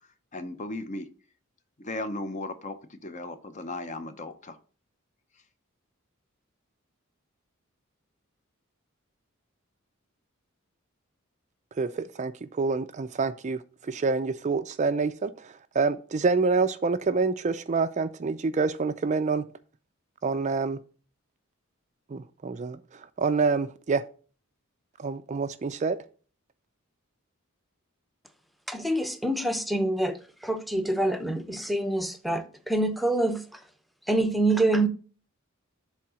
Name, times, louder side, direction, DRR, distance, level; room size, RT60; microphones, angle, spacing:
voice 1, 0.3-1.1 1.8-4.6, left 2 dB, 35° left, 0.7 m, -36 dB
voice 2, 11.8-19.4 20.2-20.8 22.1-24.0 25.0-26.0, right 4 dB, 35° right, 0.4 m, -27 dB
voice 3, 28.7-33.6 34.1-34.9, right 1 dB, ahead, 0.7 m, -26 dB
7.4 x 3.7 x 6.2 m
head